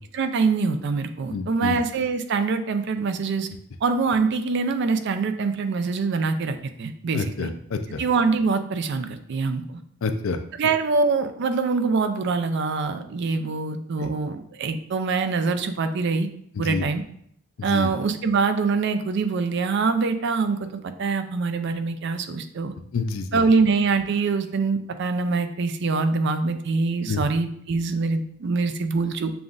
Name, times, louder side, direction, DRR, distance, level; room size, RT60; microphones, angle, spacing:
voice 1, 0.1-3.5 3.8-7.5 8.0-9.8 10.6-16.3 16.6-17.0 17.6-22.7 23.3-29.3, right 4 dB, 55° right, 9 dB, 0.4 m, -24 dB
voice 2, 1.3-1.8 7.1-8.0 10.0-10.4 14.0-14.1 16.6-16.9 17.6-17.9 22.9-23.4 27.1-27.2, left 4 dB, 75° left, 8 dB, 0.4 m, -28 dB
6.9 x 2.4 x 2.5 m, 0.66 s
head